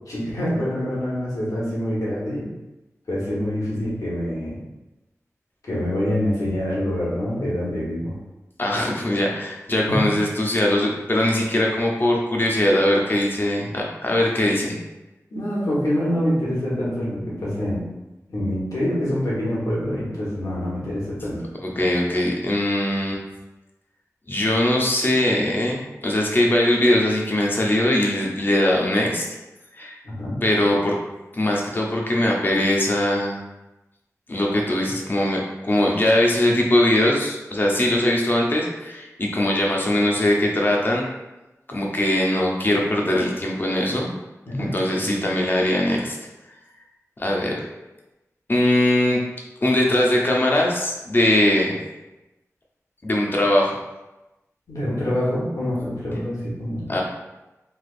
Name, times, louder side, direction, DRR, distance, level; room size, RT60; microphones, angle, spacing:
voice 1, 0.1-2.5 3.1-4.6 5.6-8.1 9.9-10.1 15.3-17.8 18.3-21.5 30.0-30.4 44.5-44.7 54.7-56.9, equal, 90° left, -7 dB, 1.2 m, -25 dB
voice 2, 8.6-14.8 21.6-23.2 24.3-29.3 29.7-29.9 30.4-31.0 31.3-33.4 34.3-41.1 41.7-44.1 44.5-46.2 47.2-47.6 48.5-49.2 49.6-51.8 53.0-53.7 56.9-57.0, left 1 dB, 40° left, -1 dB, 0.6 m, -21 dB
3.3 x 2.9 x 2.4 m, 1.0 s
wide cardioid pair, 90°, 6 cm